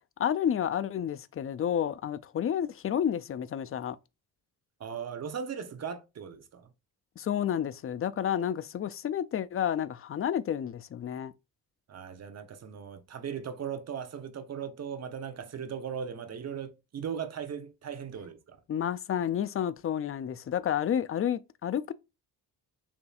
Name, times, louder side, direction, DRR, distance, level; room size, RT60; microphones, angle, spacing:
voice 1, 0.2-4.0 7.2-11.3 18.7-21.9, left 9 dB, 35° left, 0.4 m, -30 dB
voice 2, 4.8-6.7 11.9-18.6, right 7 dB, 40° right, 0.8 m, -38 dB
7.0 x 2.6 x 2.4 m
cardioid pair, 95°, 38 cm